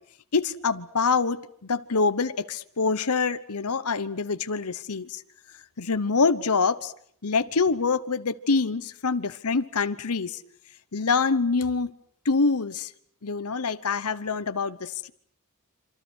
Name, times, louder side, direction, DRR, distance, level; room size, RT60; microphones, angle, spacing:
voice 1, 0.3-5.2 5.8-6.9 7.2-10.4 10.9-11.9 12.2-12.9 13.2-15.1, left 4 dB, 85° left, 1.0 m, -25 dB
27.5 x 26.5 x 6.4 m
head